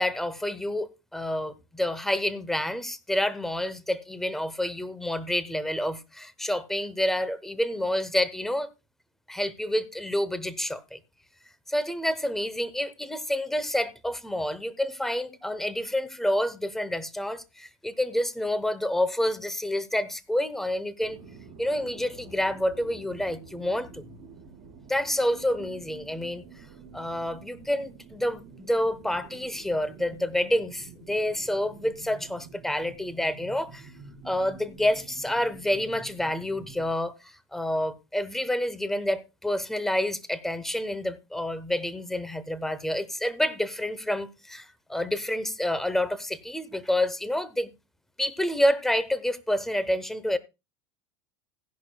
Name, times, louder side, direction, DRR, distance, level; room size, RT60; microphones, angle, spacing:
voice 1, 0.0-8.7 9.3-11.0 11.7-21.2 21.6-24.0 24.9-26.4 26.9-33.9 34.2-47.7 48.2-50.4, left 1 dB, 5° left, 0.9 m, -28 dB
sound 1, 21.0-36.9, right 4 dB, 30° right, 3.8 m, -48 dB
16.0 x 11.0 x 2.3 m
supercardioid pair, 145°, 10 cm